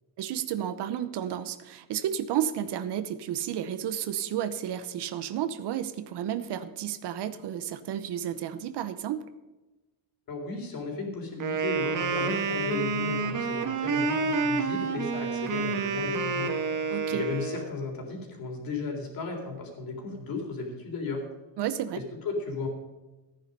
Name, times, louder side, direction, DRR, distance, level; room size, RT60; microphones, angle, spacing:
voice 1, 0.2-9.2 16.9-17.2 21.6-22.0, right 10 dB, 65° right, 12 dB, 1.0 m, -32 dB
voice 2, 10.3-16.5 17.1-21.3 21.9-22.7, left 3 dB, 50° left, 2 dB, 3.7 m, -35 dB
Wind instrument woodwind instrument, 11.4-17.7, right 4 dB, 45° right, 1.5 m, -29 dB
14.5 x 9.8 x 5.4 m, 1.1 s
cardioid pair, 145°, 45 cm